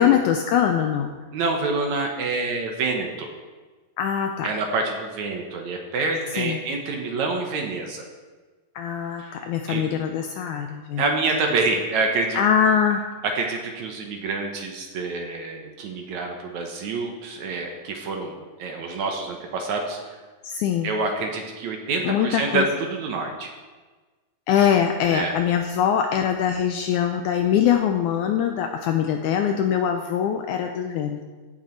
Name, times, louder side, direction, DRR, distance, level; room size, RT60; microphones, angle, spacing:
voice 1, 0.0-1.2 4.0-4.5 6.4-6.6 8.8-11.0 12.3-13.1 20.4-20.9 22.0-22.7 24.5-31.2, left 8 dB, 85° left, 5 dB, 1.8 m, -22 dB
voice 2, 1.3-3.3 4.4-8.1 9.2-9.3 9.7-9.8 11.0-12.4 13.2-20.2 20.8-23.5 25.1-25.3, right 3 dB, 65° right, 3 dB, 2.0 m, -27 dB
15.5 x 6.7 x 4.5 m, 1.3 s
omnidirectional pair, 4.0 m